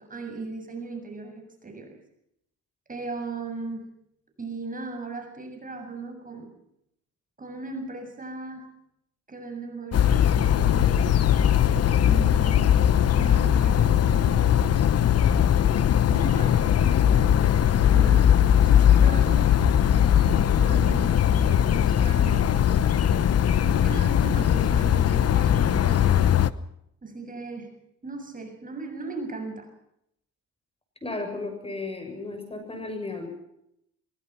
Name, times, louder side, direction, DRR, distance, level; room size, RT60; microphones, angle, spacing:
voice 1, 0.0-2.0 2.9-3.9 4.4-6.5 7.4-8.6 9.3-11.0 12.0-12.9 13.2-14.7 16.1-19.5 19.9-23.1 23.6-26.4 27.0-29.7, right 3 dB, 25° right, 4 dB, 7.2 m, -38 dB
sound 1, 9.9-26.5, left 10 dB, 55° left, 1.0 m, -20 dB
voice 2, 31.0-33.3, left 3 dB, 20° left, 5 dB, 7.5 m, -34 dB
23.0 x 23.0 x 6.0 m, 0.77 s
cardioid pair, 90°, 30 cm